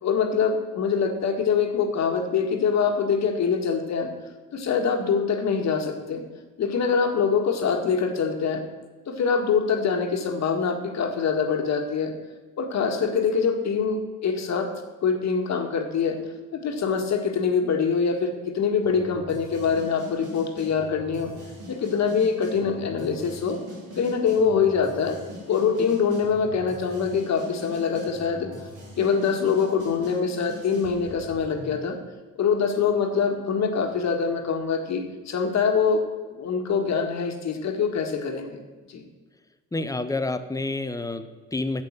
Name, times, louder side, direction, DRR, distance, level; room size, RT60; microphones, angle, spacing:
voice 1, 0.0-4.1 4.5-6.2 6.6-8.6 9.1-12.1 12.6-14.7 15.0-16.2 16.5-21.3 21.7-23.6 24.0-25.2 25.5-28.5 29.0-32.0 32.4-36.0 36.3-38.6 38.9-39.0, left 6 dB, 60° left, 5 dB, 1.8 m, -24 dB
sound 1, 18.8-31.8, left 1 dB, 90° right, 4.4 m, -42 dB
voice 2, 39.7-41.8, left 2 dB, 10° left, 10 dB, 0.9 m, -29 dB
9.3 x 7.4 x 7.4 m, 1.3 s
cardioid pair, 90°, 30 cm